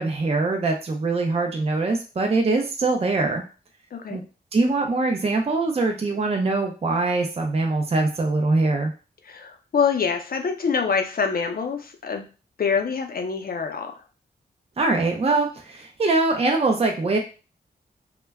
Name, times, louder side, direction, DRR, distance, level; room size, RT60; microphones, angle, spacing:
voice 1, 0.0-3.4 4.1-4.2 4.5-8.9 14.8-17.2, right 3 dB, 35° right, 2 dB, 0.4 m, -23 dB
voice 2, 9.3-12.3 12.6-13.9, left 6 dB, 55° left, 5 dB, 0.5 m, -25 dB
2.2 x 2.1 x 3.4 m, 0.34 s
wide cardioid pair, 75°, 18 cm